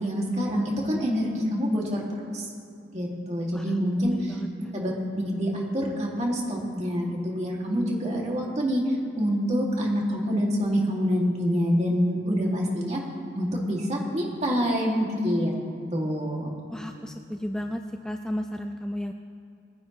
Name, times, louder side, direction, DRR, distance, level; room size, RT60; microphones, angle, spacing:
voice 1, 0.0-2.0 2.3-2.5 2.9-4.4 4.7-8.8 9.2-13.0 13.3-15.5 15.9-16.5, equal, 40° right, -2 dB, 2.2 m, -26 dB
voice 2, 3.5-4.7 16.7-19.1, equal, 5° left, 4 dB, 0.3 m, -34 dB
20.5 x 10.5 x 3.1 m, 2.6 s
head